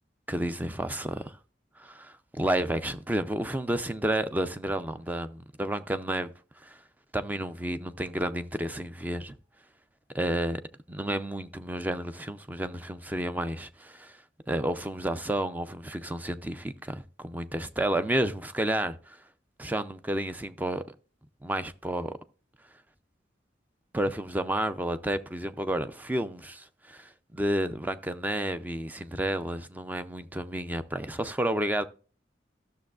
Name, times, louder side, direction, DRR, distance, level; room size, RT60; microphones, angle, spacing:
voice 1, 0.3-1.4 1.8-6.3 6.6-6.8 7.1-9.4 10.1-10.6 10.9-14.2 14.5-19.2 19.6-20.8 21.4-22.2 23.9-31.8, right 1 dB, 10° right, 0.4 m, -31 dB
13.0 x 6.5 x 2.4 m
head